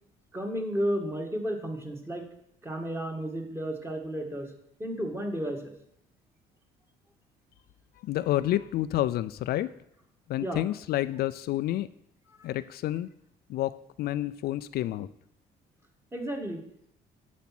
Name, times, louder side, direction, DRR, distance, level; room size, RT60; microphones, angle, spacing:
voice 1, 0.3-2.2 2.6-4.5 4.8-5.7 10.4-10.6 12.4-12.5 16.1-16.6, equal, 15° right, 3 dB, 2.0 m, -32 dB
voice 2, 8.0-9.7 10.3-11.9 12.4-13.1 13.5-13.7 14.0-15.1, left 14 dB, 65° left, 13 dB, 0.4 m, -29 dB
10.5 x 7.2 x 6.0 m, 0.73 s
cardioid pair, 110°, 17 cm